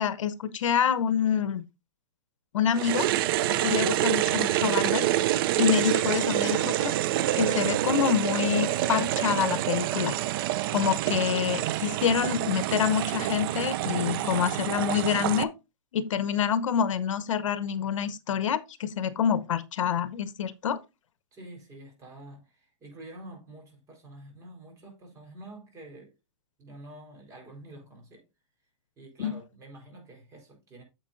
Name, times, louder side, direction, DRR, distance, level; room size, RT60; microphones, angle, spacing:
voice 1, 0.0-1.6 2.5-3.1 3.5-6.9 7.4-10.1 10.7-15.5 15.9-20.8 29.2-29.4, left 8 dB, 80° left, 0.9 m, -27 dB
sound 1, 2.7-15.4, right 14 dB, 45° right, 0.5 m, -27 dB
voice 2, 21.3-26.1 26.6-28.3 29.0-30.8, right 1 dB, 20° right, 4.3 m, -47 dB
9.5 x 7.7 x 2.6 m
hypercardioid pair, 145°, 16 cm